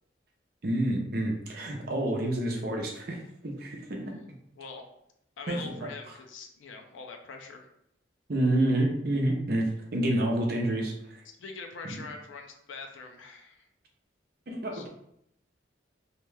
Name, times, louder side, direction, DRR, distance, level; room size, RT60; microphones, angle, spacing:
voice 1, 0.6-3.2 3.4-4.1 5.5-5.9 8.3-11.2 11.8-12.0 14.5-14.9, right 1 dB, 50° right, 0 dB, 0.6 m, -28 dB
voice 2, 5.4-7.7 11.4-13.7 14.7-14.9, left 4 dB, 85° left, 4 dB, 0.4 m, -43 dB
2.8 x 2.2 x 3.2 m, 0.76 s
head